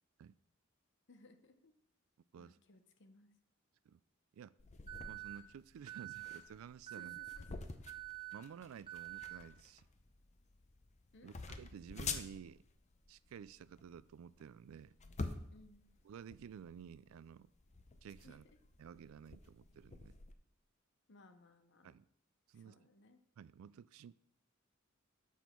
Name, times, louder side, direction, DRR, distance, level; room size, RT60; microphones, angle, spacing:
voice 1, 1.1-1.7 2.4-3.3 6.9-7.8 11.1-11.3 15.5-15.9 18.2-18.4 21.1-22.0 22.5-23.2, left 2 dB, 60° left, 0.9 m, -62 dB
sound 1, 4.6-20.3, left 4 dB, 35° left, 0.6 m, -49 dB
Alarm, 4.9-5.4 5.9-6.4 6.9-7.4 7.9-8.4 8.9-9.4, right 18 dB, 25° right, 0.9 m, -46 dB
voice 2, 5.1-7.2 8.3-9.8 11.2-12.6 13.1-15.0 16.1-17.5 18.0-18.4 18.8-20.1 21.8-22.0 22.5-22.8 23.4-24.1, right 7 dB, 85° right, 0.3 m, -53 dB
7.1 x 6.2 x 4.5 m
head